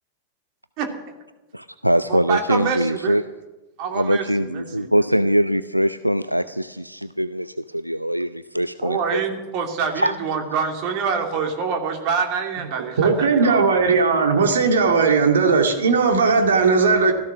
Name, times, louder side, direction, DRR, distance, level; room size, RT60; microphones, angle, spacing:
voice 1, 1.5-3.2 3.9-9.2 10.0-10.1, equal, 90° right, 13 dB, 0.4 m, -22 dB
voice 2, 2.1-3.2 3.8-4.9 8.8-13.6, right 6 dB, 45° right, 4 dB, 2.6 m, -26 dB
voice 3, 13.0-17.1, right 4 dB, 65° right, 4 dB, 2.4 m, -17 dB
16.0 x 14.0 x 6.0 m, 1.1 s
figure-of-eight pair, 90°, 0 cm